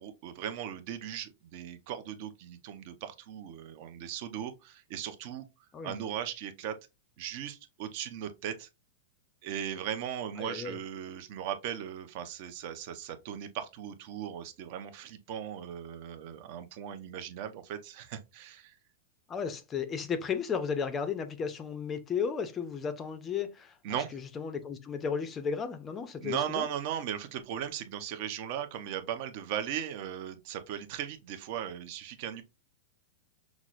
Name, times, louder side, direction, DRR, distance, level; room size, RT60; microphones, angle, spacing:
voice 1, 0.0-5.5 5.8-6.8 7.2-8.7 9.4-18.8 23.8-24.2 26.2-32.4, right 9 dB, 45° right, 0.6 m, -38 dB
voice 2, 10.4-10.8 19.3-26.7, left 6 dB, 20° left, 0.5 m, -34 dB
5.9 x 2.0 x 2.4 m
supercardioid pair, 160°, 0 cm